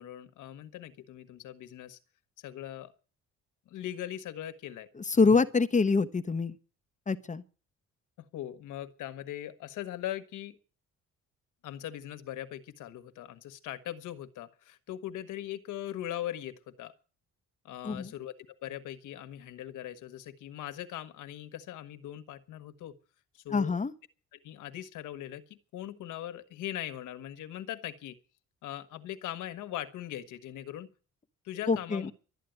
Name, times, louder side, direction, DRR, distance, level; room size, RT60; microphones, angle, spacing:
voice 1, 0.0-2.0 2.4-2.9 3.7-4.9 8.3-10.6 11.6-16.9 17.6-18.3 18.6-22.9 23.3-23.8 24.3-28.2 28.6-30.9 31.4-32.1, left 12 dB, 85° left, 1.4 m, -40 dB
voice 2, 5.1-6.5 7.1-7.4 17.8-18.1 23.5-23.9 31.7-32.1, left 4 dB, 25° left, 1.1 m, -25 dB
12.5 x 9.3 x 9.3 m
cardioid pair, 90°, 30 cm